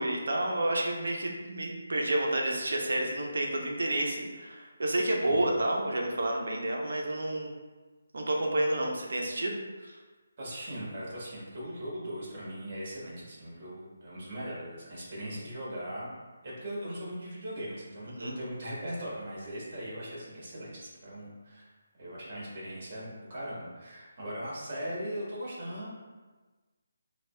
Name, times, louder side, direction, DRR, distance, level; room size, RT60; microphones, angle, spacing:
voice 1, 0.0-7.6 8.1-9.6 9.8-9.9 18.2-18.3, right 1 dB, 70° right, 0 dB, 0.6 m, -30 dB
voice 2, 5.2-5.6 10.4-16.1 16.4-21.7 22.0-25.9, equal, 40° right, -6 dB, 1.4 m, -39 dB
5.0 x 2.3 x 2.2 m, 1.3 s
figure-of-eight pair, 160°, 0 cm